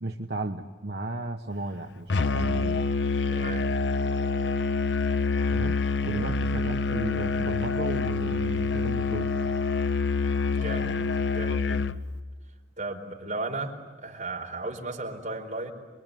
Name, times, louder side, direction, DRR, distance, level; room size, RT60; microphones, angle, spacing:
voice 1, 0.0-2.8 5.5-5.7 6.0-9.3, right 2 dB, 60° right, 3 dB, 1.2 m, -34 dB
Musical instrument, 2.1-12.0, left 4 dB, 75° left, 0.7 m, -26 dB
voice 2, 3.3-3.7 10.5-12.0 12.8-13.7 14.0-15.7, right 2 dB, 40° right, 1 dB, 4.6 m, -35 dB
27.0 x 23.0 x 9.3 m, 1.4 s
head